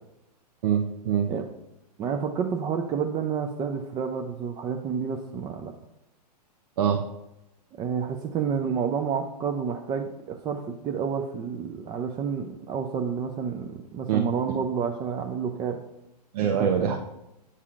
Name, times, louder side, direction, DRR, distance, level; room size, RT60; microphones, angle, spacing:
voice 1, 0.6-1.3 6.8-7.0 14.1-14.2 16.3-17.0, right 8 dB, 65° right, 2 dB, 0.8 m, -23 dB
voice 2, 2.0-5.7 7.8-15.8 16.4-17.0, right 6 dB, 20° right, 3 dB, 0.4 m, -30 dB
8.4 x 5.5 x 2.5 m, 0.89 s
hypercardioid pair, 130°, 21 cm